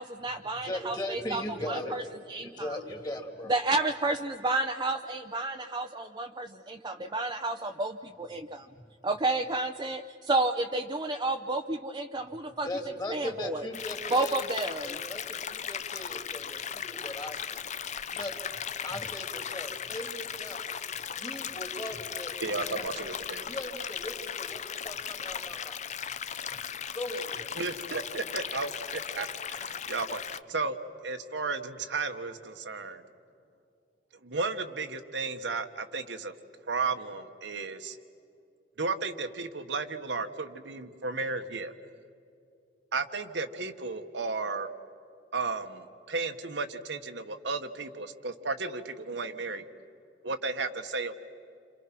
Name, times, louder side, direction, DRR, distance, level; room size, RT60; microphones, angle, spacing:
voice 1, 0.0-1.4 1.7-2.0 2.3-2.8 3.5-8.7 9.0-12.7 13.1-13.6 14.1-15.0, right 2 dB, 25° right, 5 dB, 0.7 m, -31 dB
voice 2, 0.6-2.0 2.4-3.5 12.6-14.4 14.8-17.6 18.1-22.9 23.5-25.8 26.9-27.8, left 1 dB, 25° left, 4 dB, 2.7 m, -39 dB
sound 1, 13.7-30.4, left 8 dB, 40° left, 0.7 m, -37 dB
voice 3, 22.4-23.5 27.5-30.8 31.0-33.0 34.2-36.3 36.7-38.0 38.8-41.7 42.9-44.7 45.3-49.6 50.2-51.1, right 4 dB, 80° right, 7 dB, 1.4 m, -34 dB
29.0 x 27.0 x 6.1 m, 2.5 s
head